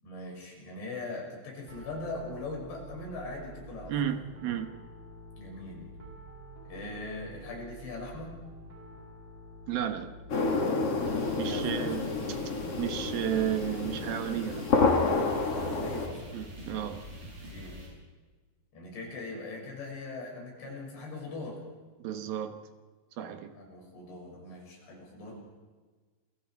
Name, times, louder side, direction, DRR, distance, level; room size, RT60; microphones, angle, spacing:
voice 1, 0.0-3.9 5.4-5.9 6.7-8.4 11.5-12.0 15.4-16.4 17.5-17.8 18.7-21.6 23.6-25.4, left 2 dB, 80° left, -1 dB, 8.7 m, -41 dB
Piano, 1.7-10.3, right 1 dB, 15° right, 5.5 m, -48 dB
voice 2, 3.9-4.7 9.7-10.1 11.4-12.4 12.8-14.7 16.3-17.0 22.0-22.7 23.2-23.5, right 10 dB, 70° right, 8 dB, 2.9 m, -33 dB
sound 1, 10.3-16.1, left 3 dB, 40° left, 3.2 m, -29 dB
sound 2, 11.0-17.9, equal, 50° right, 9.6 m, -45 dB
28.5 x 23.0 x 4.7 m, 1.3 s
omnidirectional pair, 4.9 m